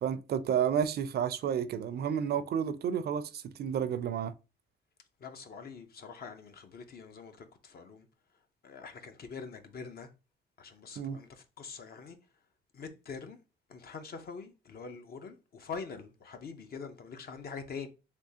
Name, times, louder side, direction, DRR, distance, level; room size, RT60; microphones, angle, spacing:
voice 1, 0.0-4.3 11.0-11.2, right 8 dB, 55° right, 0.4 m, -31 dB
voice 2, 5.2-8.1 8.3-10.1 10.6-12.2 12.7-13.4 13.7-17.9, left 5 dB, 50° left, 0.6 m, -44 dB
3.5 x 2.9 x 2.7 m
cardioid pair, 90°, 20 cm